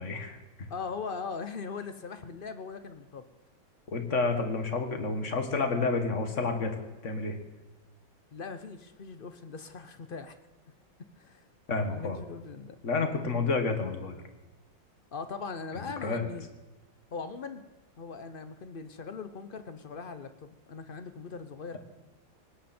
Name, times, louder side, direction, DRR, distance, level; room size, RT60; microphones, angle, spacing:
voice 1, 0.0-0.7 3.9-7.4 11.7-12.2 12.8-14.2 16.0-16.3, left 3 dB, 40° left, 6 dB, 2.0 m, -30 dB
voice 2, 0.7-3.2 8.3-10.3 11.2-11.5 11.9-12.8 15.1-16.5 17.1-17.6 18.0-21.8, left 5 dB, 60° left, 10 dB, 0.5 m, -40 dB
18.5 x 18.0 x 4.4 m, 1.1 s
omnidirectional pair, 2.1 m